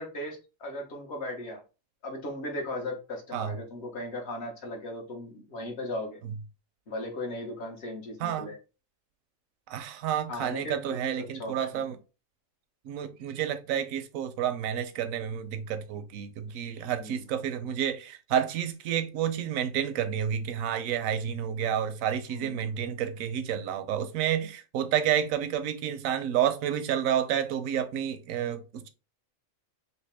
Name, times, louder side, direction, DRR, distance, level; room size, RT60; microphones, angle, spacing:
voice 1, 0.0-1.6 2.0-6.2 6.9-8.6 10.3-11.8 17.0-17.2 22.3-22.8, left 1 dB, 55° left, 1.3 m, -37 dB
voice 2, 9.7-12.0 12.9-28.9, right 9 dB, 80° right, 1.0 m, -30 dB
3.5 x 2.7 x 3.3 m
omnidirectional pair, 1.4 m